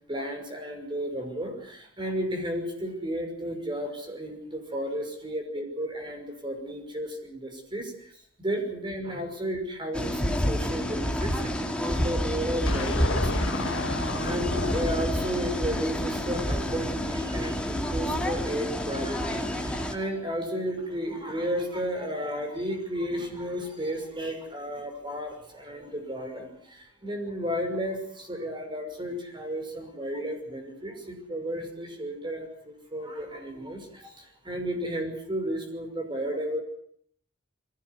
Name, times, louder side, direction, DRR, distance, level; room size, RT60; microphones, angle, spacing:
voice 1, 0.1-8.1 8.4-13.8 14.2-36.6, equal, 25° right, 4 dB, 5.9 m, -33 dB
sound 1, 9.9-19.9, equal, 5° left, 2.4 m, -29 dB
sound 2, 12.7-17.0, left 2 dB, 75° left, 1.8 m, -34 dB
22.0 x 16.5 x 9.8 m, 0.65 s
head